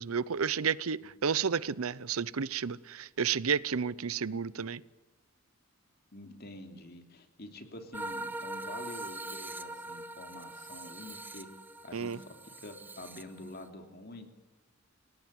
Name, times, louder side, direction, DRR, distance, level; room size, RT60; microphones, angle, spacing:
voice 1, 0.0-4.8 11.9-12.2, right 6 dB, 85° right, 0.7 m, -31 dB
voice 2, 6.1-11.5 11.8-14.3, left 1 dB, 50° left, 3.1 m, -47 dB
sound 1, 7.9-13.7, right 2 dB, 10° right, 1.0 m, -42 dB
29.0 x 18.0 x 7.6 m
head